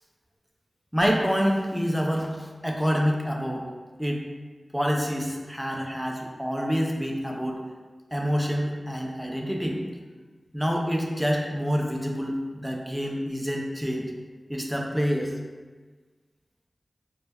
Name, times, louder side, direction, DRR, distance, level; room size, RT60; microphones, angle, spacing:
voice 1, 0.9-3.6 4.0-4.2 4.7-7.6 8.1-9.8 10.5-14.1 14.5-15.3, equal, 5° right, 0 dB, 0.4 m, -27 dB
2.2 x 2.0 x 3.4 m, 1.4 s
wide cardioid pair, 60°, 0 cm